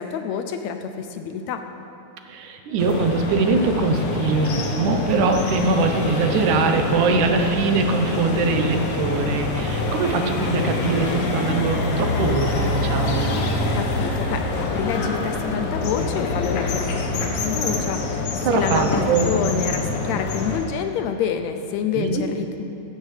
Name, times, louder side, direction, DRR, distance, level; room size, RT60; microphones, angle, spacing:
voice 1, 0.0-1.6 13.7-22.6, left 7 dB, 75° left, 7 dB, 1.7 m, -28 dB
voice 2, 2.3-13.4 18.5-19.3 22.0-22.2, right 4 dB, 75° right, 5 dB, 2.4 m, -22 dB
sound 1, 2.8-20.6, left 3 dB, 60° left, 2.0 m, -25 dB
15.5 x 14.0 x 3.3 m, 2.8 s
omnidirectional pair, 3.6 m